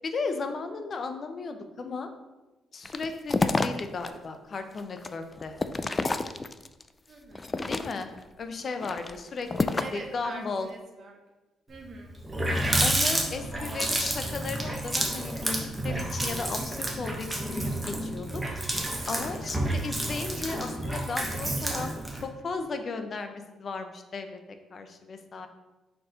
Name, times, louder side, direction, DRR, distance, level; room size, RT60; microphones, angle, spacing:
voice 1, 0.0-2.1 2.7-5.6 7.7-8.1 8.4-10.7 12.8-18.4 19.1-21.9 22.2-24.4 24.7-25.5, left 4 dB, 45° left, 7 dB, 0.7 m, -35 dB
sound 1, 2.8-4.1 4.5-6.8 7.3-8.2 8.7-10.1, left 3 dB, 25° left, 0.3 m, -29 dB
voice 2, 7.1-7.6 9.8-11.2 11.7-12.2 13.6-14.1 19.4-19.6, right 3 dB, 55° right, 2 dB, 0.9 m, -45 dB
Water tap faucet, 11.8-11.9 12.1-22.2, right 1 dB, 10° right, 1.2 m, -30 dB
4.6 x 4.2 x 5.0 m, 1.1 s
cardioid pair, 90°, 0 cm